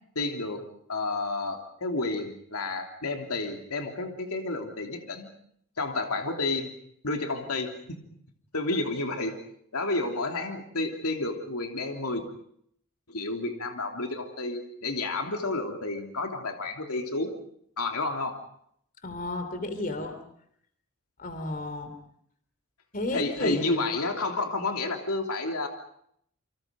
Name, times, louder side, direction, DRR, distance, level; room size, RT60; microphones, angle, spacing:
voice 1, 0.1-0.6 0.9-5.3 5.8-6.7 7.0-8.0 8.5-9.4 9.7-12.2 13.1-17.3 17.8-18.4 23.1-25.7, left 2 dB, 90° left, 3 dB, 3.2 m, -30 dB
voice 2, 19.0-20.1 21.2-21.9 22.9-23.7, left 2 dB, 35° left, 7 dB, 3.4 m, -32 dB
28.5 x 25.5 x 5.3 m, 0.68 s
head